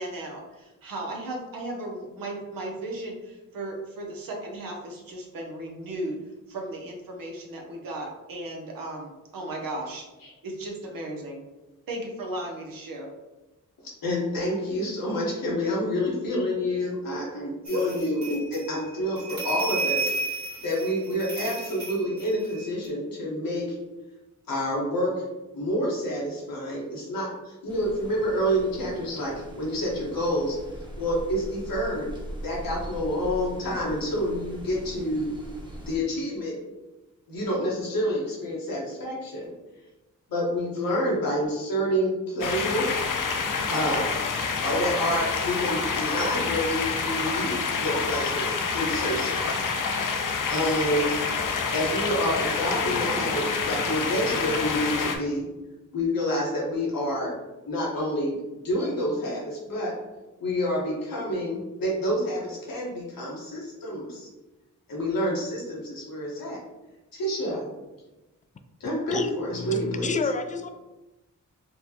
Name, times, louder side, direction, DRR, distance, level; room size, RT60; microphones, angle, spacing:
voice 1, 0.0-6.2 6.5-10.0 10.4-11.4 11.9-13.1 17.7-17.8, right 1 dB, 85° right, 1 dB, 0.8 m, -35 dB
voice 2, 14.0-23.8 24.5-25.2 25.5-30.6 31.0-32.1 32.4-35.3 35.8-36.5 37.3-39.5 40.3-42.8 43.7-44.0 44.6-49.6 50.5-51.2 51.7-55.4 55.9-57.4 57.7-58.3 58.6-59.9 60.4-64.3 64.9-66.6 67.1-67.7 68.8-70.2, equal, 90° left, -5 dB, 1.3 m, -28 dB
sound 1, 17.6-22.9, right 3 dB, 60° right, 1.2 m, -32 dB
sound 2, 27.7-36.0, equal, 15° right, 0.9 m, -41 dB
sound 3, 42.4-55.2, left 5 dB, 70° left, 0.6 m, -27 dB
voice 3, 69.1-70.7, left 4 dB, 25° left, 8 dB, 0.4 m, -30 dB
4.4 x 2.2 x 2.8 m, 1.1 s
cardioid pair, 55°, 33 cm